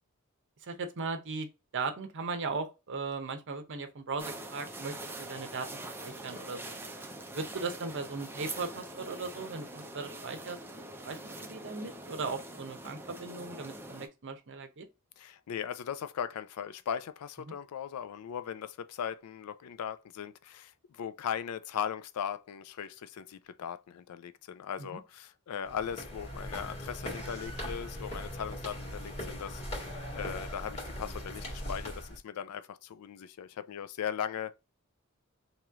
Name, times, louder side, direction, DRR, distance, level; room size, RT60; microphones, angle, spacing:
voice 1, 0.6-1.5 1.7-6.8 7.3-14.9 24.8-24.9, right 4 dB, 55° right, 0.7 m, -38 dB
sound 1, 4.2-14.1, right 2 dB, 10° right, 0.5 m, -44 dB
voice 2, 15.2-29.9 30.1-34.5, left 8 dB, 85° left, 0.4 m, -38 dB
sound 2, 25.6-32.2, equal, 30° left, 1.9 m, -40 dB
3.0 x 2.9 x 3.5 m
head